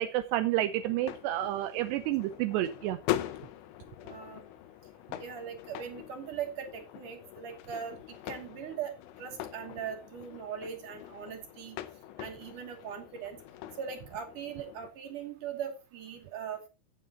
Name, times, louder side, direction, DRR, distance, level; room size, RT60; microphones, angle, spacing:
voice 1, 0.0-3.0, right 13 dB, 80° right, 9 dB, 2.5 m, -30 dB
sound 1, 0.7-14.9, left 14 dB, 80° left, 3.2 m, -42 dB
voice 2, 4.0-4.4 5.2-7.9 8.3-11.8 12.2-13.4 13.8-16.7, right 8 dB, 45° right, 4 dB, 3.6 m, -40 dB
14.5 x 9.3 x 2.9 m, 0.28 s
omnidirectional pair, 5.7 m